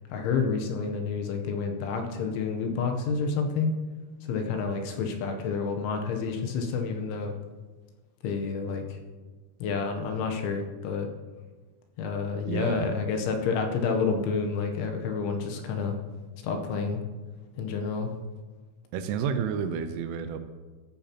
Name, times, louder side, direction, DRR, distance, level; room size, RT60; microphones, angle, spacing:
voice 1, 0.1-3.7 4.2-7.4 8.2-9.0 9.6-11.1 12.0-16.0 16.4-17.0 17.6-18.1, left 5 dB, 75° left, 3 dB, 3.2 m, -29 dB
voice 2, 12.5-12.9 18.9-20.4, right 7 dB, 85° right, 9 dB, 3.2 m, -30 dB
14.5 x 10.0 x 2.9 m, 1.3 s
omnidirectional pair, 5.8 m